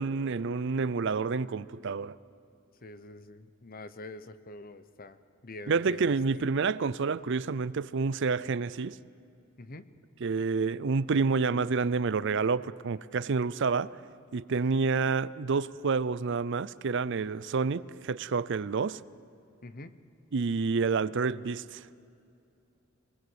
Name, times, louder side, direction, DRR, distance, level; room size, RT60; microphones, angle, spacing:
voice 1, 0.0-2.2 5.7-9.0 10.2-13.9 14.3-19.0 20.3-21.8, right 4 dB, 60° right, 18 dB, 0.5 m, -28 dB
voice 2, 2.8-5.2 5.4-6.5 9.6-9.9 19.6-19.9, left 2 dB, 45° left, 13 dB, 1.0 m, -45 dB
24.5 x 20.0 x 8.1 m, 2.5 s
head